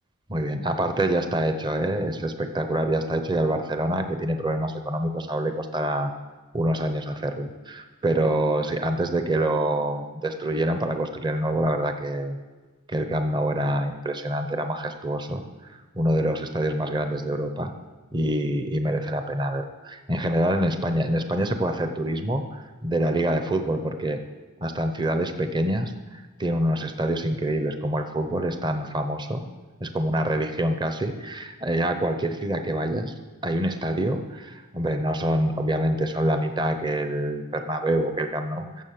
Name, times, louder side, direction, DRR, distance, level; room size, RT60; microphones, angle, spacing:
voice 1, 0.3-6.1 6.5-12.4 12.9-15.4 15.7-17.7 18.1-24.2 24.6-29.4 29.8-33.1 33.4-38.8, right 1 dB, 20° right, 7 dB, 0.8 m, -26 dB
15.0 x 7.3 x 6.7 m, 1.3 s
head